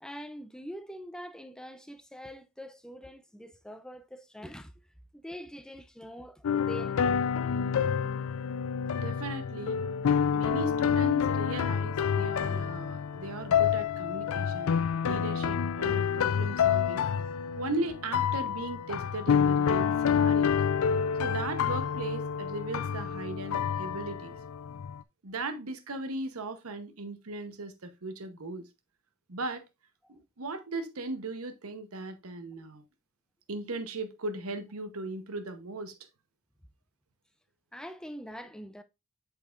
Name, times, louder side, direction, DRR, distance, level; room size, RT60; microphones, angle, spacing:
voice 1, 0.0-4.7 5.1-7.2 30.0-30.1 37.7-38.8, equal, 5° left, 0.4 m, -44 dB
sound 1, 6.4-25.0, left 7 dB, 75° left, 0.4 m, -28 dB
voice 2, 8.9-9.8 10.3-17.1 17.6-20.6 21.2-24.4 25.2-28.7 29.3-29.6 30.1-32.8 33.5-35.9, right 2 dB, 90° right, 0.9 m, -37 dB
8.1 x 5.5 x 2.4 m
head